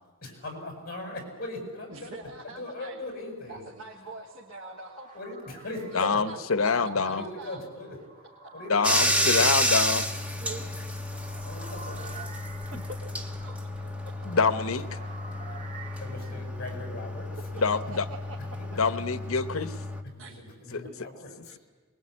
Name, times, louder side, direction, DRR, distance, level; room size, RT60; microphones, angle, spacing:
voice 1, 0.2-2.1 2.4-3.7 5.1-6.2 6.7-6.8 7.1-8.0 8.5-9.7 11.5-12.0 16.0-17.3 20.2-21.3, left 2 dB, 45° left, 4 dB, 7.8 m, -39 dB
voice 2, 1.9-3.0 3.5-5.1 6.3-7.6 10.4-10.6 13.4-13.6 17.7-18.4 18.7-18.8 20.2-20.4 20.8-21.0 21.4-21.6, right 2 dB, 70° right, -1 dB, 2.8 m, -44 dB
sound 1, 3.4-16.9, right 3 dB, 35° right, 3.6 m, -50 dB
voice 3, 5.9-7.2 8.7-10.1 14.3-14.8 17.6-18.1 18.8-19.7 20.7-20.8, left 4 dB, 85° left, 12 dB, 1.0 m, -26 dB
Bathtub (filling or washing), 8.8-20.0, equal, 5° right, 1.8 m, -31 dB
24.5 x 22.0 x 9.8 m, 1.4 s
head